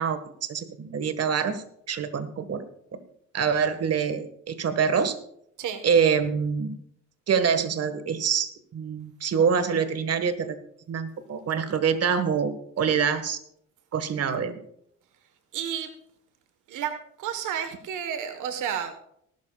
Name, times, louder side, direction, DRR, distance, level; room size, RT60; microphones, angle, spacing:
voice 1, 0.0-2.6 3.3-5.2 5.8-6.7 7.3-10.6 10.9-13.4 13.9-14.6, right 6 dB, 55° right, 10 dB, 1.6 m, -25 dB
voice 2, 15.5-15.9 16.7-18.9, right 8 dB, 85° right, 8 dB, 1.4 m, -31 dB
19.5 x 12.0 x 2.4 m, 0.71 s
cardioid pair, 90°, 30 cm